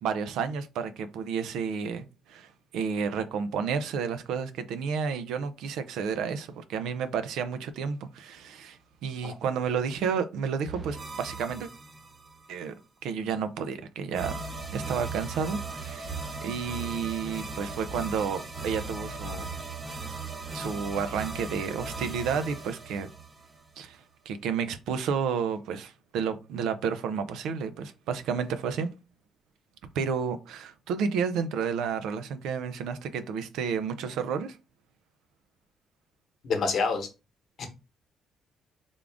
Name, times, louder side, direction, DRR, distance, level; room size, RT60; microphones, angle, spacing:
voice 1, 0.0-11.7 12.5-12.7 13.0-14.4 14.7-19.5 20.5-23.1 23.8-28.9 29.9-34.6, right 6 dB, 85° right, 0.4 m, -31 dB
sound 1, 10.6-12.5 14.1-23.9, right 3 dB, 25° right, 0.7 m, -38 dB
voice 2, 36.4-37.1 37.6-37.7, left 4 dB, 55° left, 1.0 m, -27 dB
3.6 x 2.4 x 3.5 m
cardioid pair, 120°, 0 cm